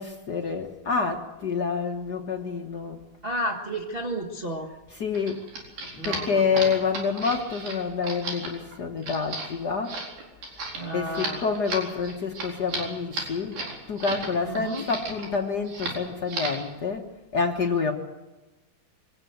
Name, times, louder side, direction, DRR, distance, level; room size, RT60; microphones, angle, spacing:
voice 1, 0.0-3.0 4.9-5.5 5.9-10.0 10.9-13.6 13.9-17.1 17.3-17.9, left 5 dB, 85° left, 2 dB, 0.8 m, -27 dB
voice 2, 3.2-4.7 6.0-6.7 10.7-11.4 14.4-14.8, right 1 dB, 35° right, 0 dB, 0.8 m, -32 dB
sound 1, 5.1-14.3 14.5-15.3 15.6-16.0 16.3-16.7, right 3 dB, 80° right, 6.1 m, -34 dB
24.0 x 17.0 x 8.0 m, 1.1 s
omnidirectional pair, 4.0 m